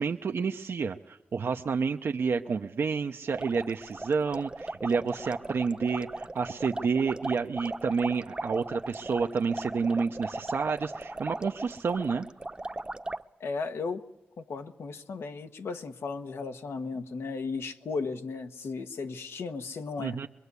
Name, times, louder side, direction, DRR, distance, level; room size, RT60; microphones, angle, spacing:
voice 1, 0.0-12.3 20.0-20.3, right 5 dB, 70° right, 4 dB, 0.8 m, -29 dB
sound 1, 3.3-13.2, right 2 dB, 25° right, 0.8 m, -38 dB
voice 2, 13.4-14.0 14.4-20.2, left 4 dB, 85° left, 7 dB, 1.2 m, -35 dB
23.0 x 23.0 x 8.3 m, 0.96 s
cardioid pair, 65°, 4 cm